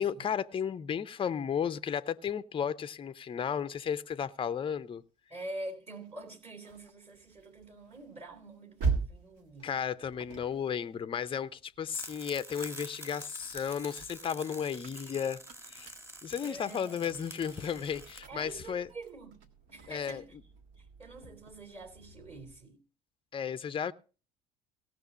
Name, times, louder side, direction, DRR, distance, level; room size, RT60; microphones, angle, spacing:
voice 1, 0.0-5.0 9.6-15.4 15.7-15.9 16.2-18.9 19.9-20.2 23.3-23.9, left 8 dB, 25° left, 0.6 m, -34 dB
voice 2, 5.3-9.7 16.4-17.2 18.3-19.4 19.7-20.4 20.8-22.8, right 2 dB, 30° right, 3.2 m, -46 dB
sound 1, 5.9-12.5 12.9-22.7, right 4 dB, 65° right, 1.7 m, -42 dB
sound 2, 11.9-18.2, right 1 dB, 10° right, 1.9 m, -47 dB
17.5 x 6.2 x 5.0 m
figure-of-eight pair, 60°, 21 cm